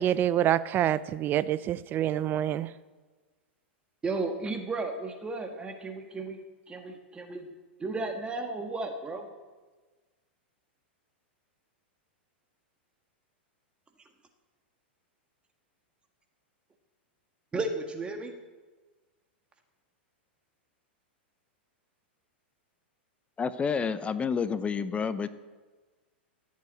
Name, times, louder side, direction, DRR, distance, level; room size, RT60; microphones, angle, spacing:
voice 1, 0.0-2.7, right 11 dB, 35° right, 17 dB, 0.5 m, -26 dB
voice 2, 4.0-6.4 6.7-7.5 7.8-9.3 17.5-18.3, right 3 dB, 15° right, 4 dB, 1.6 m, -34 dB
voice 3, 23.4-25.3, left 6 dB, 20° left, 14 dB, 0.7 m, -29 dB
16.0 x 8.4 x 8.2 m, 1.3 s
hypercardioid pair, 105°, 6 cm